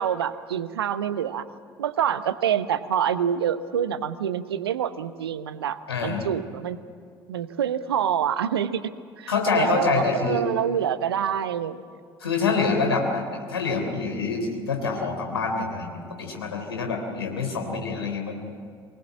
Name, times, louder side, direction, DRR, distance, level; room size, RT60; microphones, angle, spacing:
voice 1, 0.0-1.4 1.8-6.8 7.3-8.8 9.2-11.8, right 9 dB, 75° right, 13 dB, 0.9 m, -26 dB
voice 2, 5.9-6.3 9.3-10.4 12.2-18.5, left 4 dB, 80° left, 3 dB, 3.3 m, -26 dB
24.0 x 18.5 x 7.5 m, 2.2 s
figure-of-eight pair, 60°, 13 cm